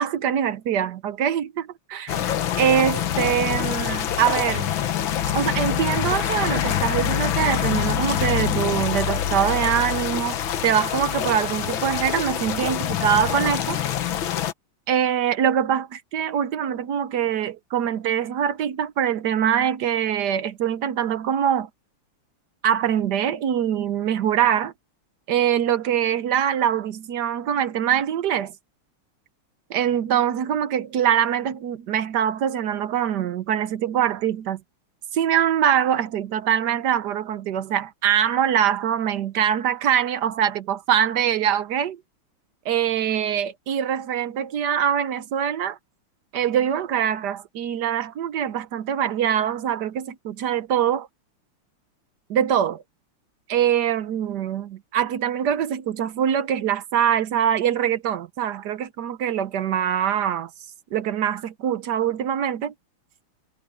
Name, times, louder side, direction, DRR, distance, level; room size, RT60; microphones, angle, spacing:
voice 1, 0.0-2.2 2.6-4.7 5.3-13.8 14.9-21.7 22.6-24.7 25.3-28.5 29.7-34.6 35.1-42.0 42.6-45.8 46.3-51.1 52.3-52.8 53.5-60.5 60.9-62.7, right 9 dB, 60° right, 1.2 m, -23 dB
sound 1, 2.1-14.5, left 10 dB, 65° left, 1.8 m, -25 dB
omnidirectional pair, 2.4 m